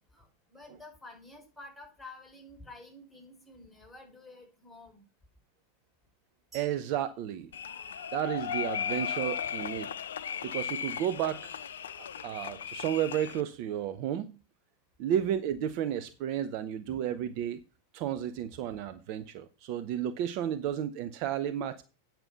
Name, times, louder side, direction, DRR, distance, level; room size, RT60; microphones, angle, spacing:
voice 1, 0.1-5.0 16.9-17.0, left 2 dB, ahead, 4.5 m, -50 dB
sound 1, 6.5-8.5, right 7 dB, 15° right, 3.0 m, -57 dB
voice 2, 6.5-7.5 8.1-9.9 10.4-11.5 12.2-14.3 15.0-17.6 17.9-21.8, right 10 dB, 45° right, 0.6 m, -32 dB
sound 2, 7.5-13.4, left 8 dB, 65° left, 0.5 m, -36 dB
8.9 x 5.9 x 6.7 m
figure-of-eight pair, 90°, 0 cm